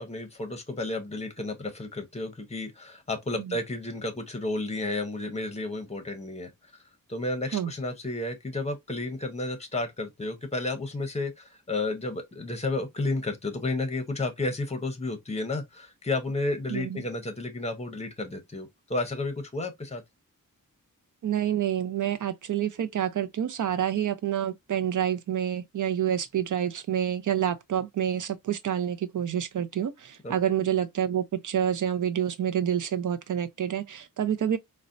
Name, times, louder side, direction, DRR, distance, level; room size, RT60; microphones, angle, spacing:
voice 1, 0.0-6.7 7.1-20.0 30.2-30.3, left 2 dB, 20° left, 0.8 m, -32 dB
voice 2, 16.7-17.0 21.2-34.6, right 10 dB, 65° right, 0.5 m, -28 dB
4.0 x 2.1 x 2.5 m
wide cardioid pair, 140°, 34 cm